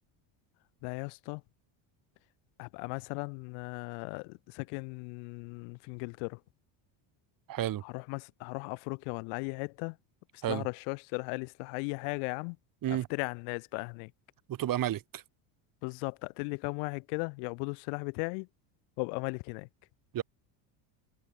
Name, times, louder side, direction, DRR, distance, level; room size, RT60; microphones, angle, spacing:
voice 1, 0.8-1.4 2.6-6.4 7.8-10.0 10.5-12.6 12.9-14.1 15.8-18.5 19.0-19.7, left 40 dB or more, 85° left, 3.8 m, -37 dB
voice 2, 7.5-7.8 10.4-10.7 12.8-13.1 14.5-15.2 20.1-20.2, right 12 dB, 45° right, 5.3 m, -31 dB
cardioid pair, 140°, 48 cm